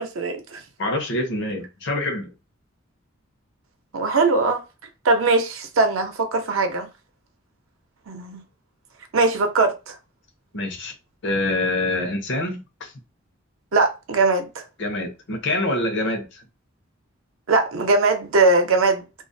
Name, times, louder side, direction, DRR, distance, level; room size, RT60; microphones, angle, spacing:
voice 1, 0.0-0.6 3.9-4.6 5.0-6.9 8.1-8.4 9.1-9.9 13.7-14.6 17.5-19.2, right 3 dB, 85° right, 0.6 m, -20 dB
voice 2, 0.8-2.3 10.5-10.9 11.2-12.9 14.8-16.4, left 2 dB, 65° left, 0.7 m, -25 dB
2.4 x 2.0 x 2.5 m
head